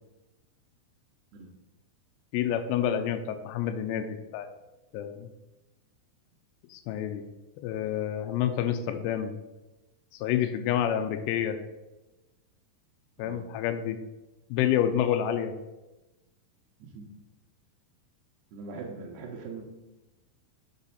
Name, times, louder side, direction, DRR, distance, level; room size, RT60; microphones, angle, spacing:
voice 1, 2.3-4.5 4.9-5.3 6.7-7.3 7.6-9.4 10.1-11.6 13.2-14.0 14.5-15.5, left 10 dB, 85° left, 7 dB, 2.7 m, -28 dB
voice 2, 18.5-19.6, right 4 dB, 80° right, -1 dB, 2.8 m, -41 dB
6.7 x 4.1 x 5.6 m, 1.0 s
omnidirectional pair, 4.8 m